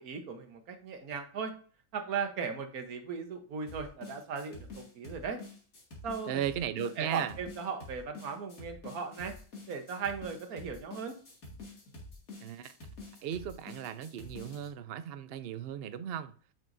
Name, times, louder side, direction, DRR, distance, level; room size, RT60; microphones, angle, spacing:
voice 1, 0.0-1.5 1.9-5.4 6.0-6.4 7.0-9.3 9.7-11.2, right 5 dB, 80° right, 1.6 m, -37 dB
sound 1, 3.7-14.7, left 2 dB, 70° left, 2.5 m, -47 dB
voice 2, 6.3-7.4 12.4-12.8 13.2-16.3, right 9 dB, 60° right, 0.6 m, -36 dB
8.9 x 6.2 x 2.6 m
omnidirectional pair, 1.5 m